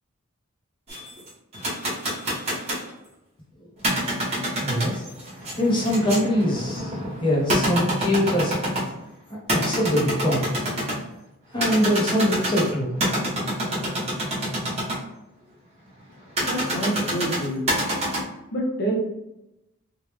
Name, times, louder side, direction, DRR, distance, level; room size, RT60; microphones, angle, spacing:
sound 1, 0.9-2.9 3.8-9.0 9.5-11.0 11.5-15.0 16.4-18.2, right 1 dB, 30° right, 1.4 m, -27 dB
voice 1, 4.6-5.0 5.6-8.6 9.3-10.5 11.5-12.9, equal, 25° left, -4 dB, 1.2 m, -23 dB
voice 2, 16.4-17.7 18.5-18.9, right 1 dB, 55° left, -2 dB, 1.1 m, -27 dB
3.7 x 2.6 x 3.2 m, 0.90 s
head